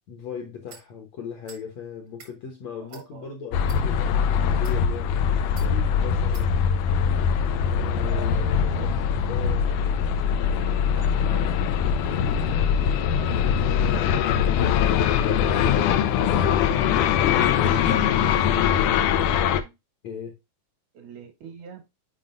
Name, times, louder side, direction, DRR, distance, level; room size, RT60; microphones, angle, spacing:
voice 1, 0.1-5.2 5.5-6.7 7.6-9.7 13.9-14.2 20.0-20.4, left 7 dB, 65° left, 1.8 m, -38 dB
sound 1, 0.7-0.9 1.4-1.6 2.1-2.3 2.9-3.1 3.6-3.8 4.5-4.8 5.6-5.7 6.3-6.5, right 5 dB, 50° right, 1.2 m, -47 dB
voice 2, 2.8-3.3 8.6-9.0 9.4-11.5 12.0-13.5 13.9-16.9 17.5-19.7 20.9-21.8, right 6 dB, 80° right, 3.6 m, -45 dB
sound 2, 3.5-19.6, left 8 dB, 85° left, 1.8 m, -22 dB
7.6 x 4.9 x 2.5 m
omnidirectional pair, 4.4 m